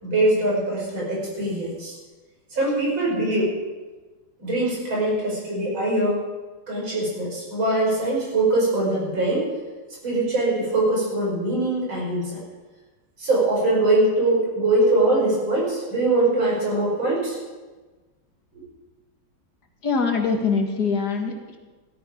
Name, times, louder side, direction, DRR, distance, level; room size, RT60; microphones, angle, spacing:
voice 1, 0.0-2.0 2.5-3.5 4.4-6.2 6.7-9.5 10.0-12.4 13.2-17.4 18.5-18.6, right 2 dB, 90° right, -3 dB, 6.0 m, -22 dB
voice 2, 19.8-21.6, left 5 dB, 55° left, 3 dB, 2.2 m, -23 dB
17.0 x 13.0 x 5.1 m, 1.3 s
omnidirectional pair, 2.1 m